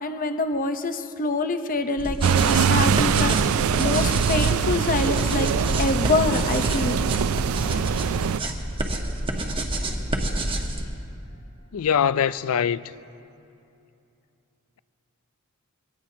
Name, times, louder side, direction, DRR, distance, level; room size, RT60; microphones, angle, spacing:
voice 1, 0.0-5.5 5.8-7.0, left 3 dB, 40° left, 0.7 m, -26 dB
sound 1, 2.0-10.8, right 1 dB, 25° right, 1.1 m, -28 dB
sound 2, 2.2-8.4, right 7 dB, 70° right, 0.4 m, -23 dB
voice 2, 11.7-12.8, left 8 dB, 75° left, 0.4 m, -22 dB
23.0 x 17.5 x 2.8 m
head